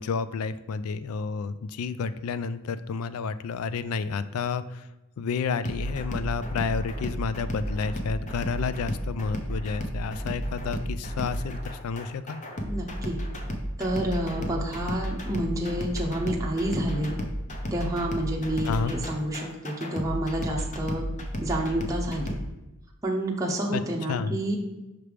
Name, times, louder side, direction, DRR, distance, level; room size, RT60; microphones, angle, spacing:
voice 1, 0.0-4.9 5.2-12.4 18.7-18.9 23.7-23.8 24.1-24.4, left 5 dB, 75° left, 13 dB, 0.4 m, -30 dB
sound 1, 5.6-22.4, equal, 35° left, 0.7 m, -33 dB
voice 2, 12.6-13.2 13.8-17.2 17.7-21.1 21.4-22.3 23.0-24.6, right 1 dB, 15° right, -2 dB, 0.6 m, -29 dB
6.0 x 3.3 x 4.9 m, 1.0 s
head